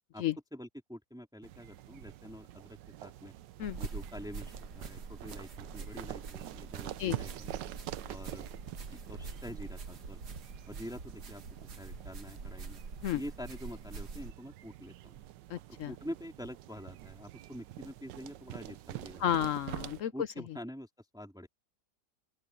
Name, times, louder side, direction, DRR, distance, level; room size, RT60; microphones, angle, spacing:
voice 1, 0.5-3.3 3.8-7.5 8.1-8.5 8.9-10.2 10.7-12.8 13.1-15.2 15.7-19.3 20.1-20.9 21.1-21.5, equal, ahead, 2.9 m, -46 dB
sound 1, 1.4-20.0, right 14 dB, 90° right, 1.4 m, -46 dB
sound 2, 3.6-14.3, right 4 dB, 65° right, 2.4 m, -45 dB
voice 2, 15.5-15.9 19.2-20.1, left 11 dB, 70° left, 0.7 m, -32 dB
open air
omnidirectional pair, 1.9 m